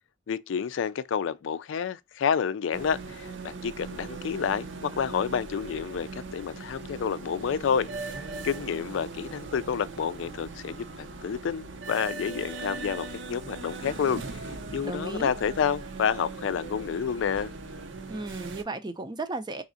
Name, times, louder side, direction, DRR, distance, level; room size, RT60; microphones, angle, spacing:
voice 1, 0.3-8.1 8.4-14.4 14.7-17.5, left 7 dB, 70° left, 0.4 m, -29 dB
sound 1, 2.7-18.6, right 3 dB, 65° right, 0.6 m, -39 dB
voice 2, 14.8-15.3 18.1-19.6, right 2 dB, 20° right, 0.5 m, -34 dB
4.1 x 3.6 x 2.5 m
head